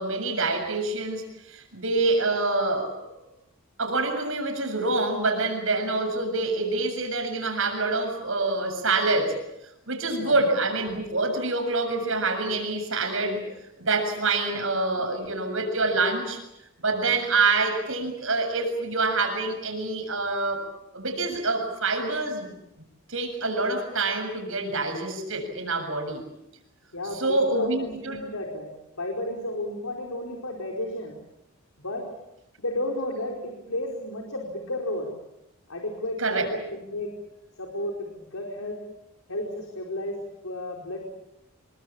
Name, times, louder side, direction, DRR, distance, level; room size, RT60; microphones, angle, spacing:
voice 1, 0.0-3.1 3.8-9.4 9.9-13.4 13.8-16.4 16.8-20.7 20.9-22.5 23.1-26.2 27.1-28.2 36.2-36.5, right 3 dB, 70° right, 5 dB, 7.3 m, -26 dB
voice 2, 14.9-15.3 26.9-31.2 31.8-32.0 32.6-35.1 35.7-37.1 37.6-38.8 39.3-40.2 40.4-41.0, left 1 dB, 85° left, 1 dB, 4.8 m, -33 dB
27.5 x 24.0 x 7.4 m, 0.86 s
head